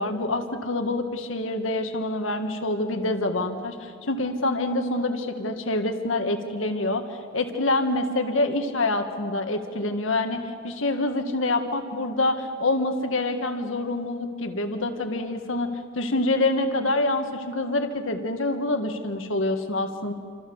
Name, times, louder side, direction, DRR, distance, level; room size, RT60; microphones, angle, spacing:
voice 1, 0.0-7.0 7.3-20.1, left 2 dB, 80° left, 6 dB, 1.8 m, -26 dB
28.0 x 26.0 x 7.2 m, 2.2 s
head